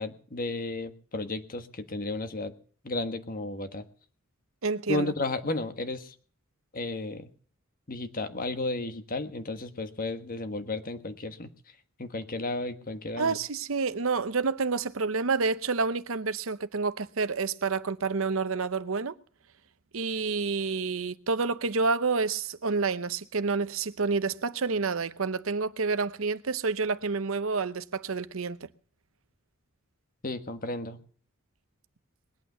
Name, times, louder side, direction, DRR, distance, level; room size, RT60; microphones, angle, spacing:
voice 1, 0.0-2.5 2.8-3.8 4.9-6.1 6.7-7.3 7.9-11.5 12.0-13.4 30.2-31.0, left 2 dB, 45° left, 1.4 m, -33 dB
voice 2, 4.6-5.1 13.2-19.1 19.9-28.7, right 4 dB, 75° right, 0.8 m, -29 dB
20.5 x 8.8 x 6.7 m
head